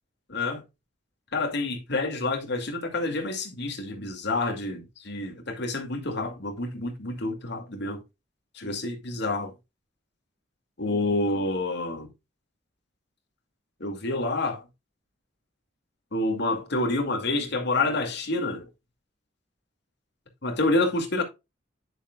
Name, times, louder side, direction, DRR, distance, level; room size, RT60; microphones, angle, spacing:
voice 1, 0.3-0.6 1.3-8.0 8.5-9.5 10.8-12.1 13.8-14.6 16.1-18.7 20.4-21.2, left 2 dB, 60° left, 2.3 m, -28 dB
10.5 x 6.5 x 2.3 m
head